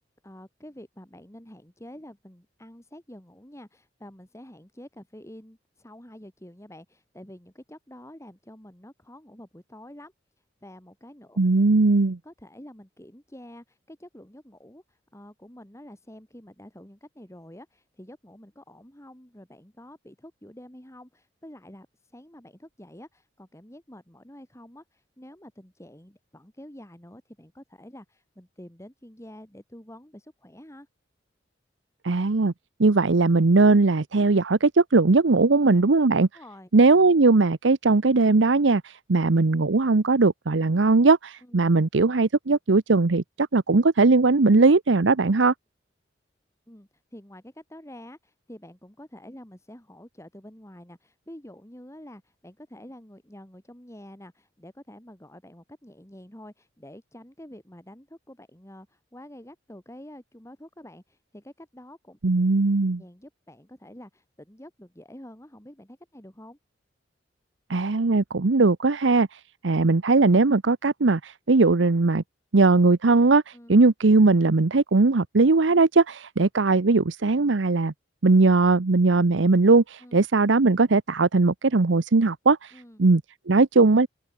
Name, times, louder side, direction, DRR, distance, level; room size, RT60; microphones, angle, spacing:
voice 1, 0.0-10.1 10.6-11.4 12.2-21.9 22.1-30.9 36.3-36.7 41.4-41.6 46.7-62.2 63.0-66.6 73.5-73.8 80.0-80.2 82.7-83.1, left 1 dB, 15° left, 3.4 m, -47 dB
voice 2, 11.4-12.2 32.0-32.5 32.8-36.3 36.7-45.5 62.2-63.0 67.7-72.2 72.5-77.9 78.2-84.1, right 3 dB, 80° right, 0.8 m, -19 dB
head